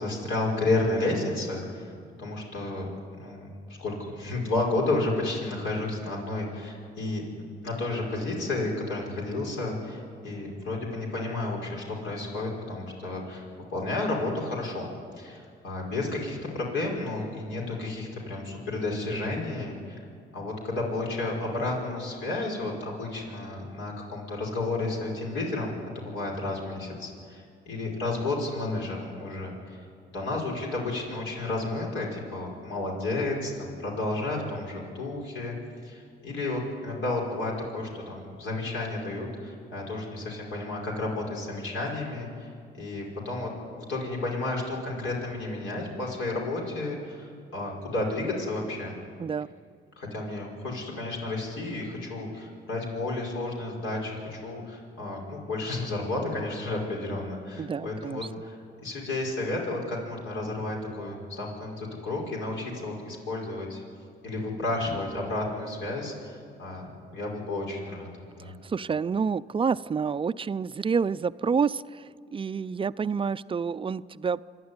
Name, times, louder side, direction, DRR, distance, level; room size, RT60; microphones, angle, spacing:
voice 1, 0.0-1.9 2.2-2.9 3.2-3.5 3.8-7.2 7.6-13.5 13.7-14.9 15.2-20.0 20.3-29.9 30.1-35.6 35.8-49.0 50.0-58.6 58.8-63.8 64.2-68.6, left 2 dB, 80° left, -2 dB, 5.5 m, -32 dB
voice 2, 57.6-58.2 68.6-72.0 72.3-74.4, right 6 dB, 25° right, 16 dB, 0.4 m, -28 dB
26.5 x 11.5 x 9.7 m, 2.2 s
cardioid pair, 90°, 20 cm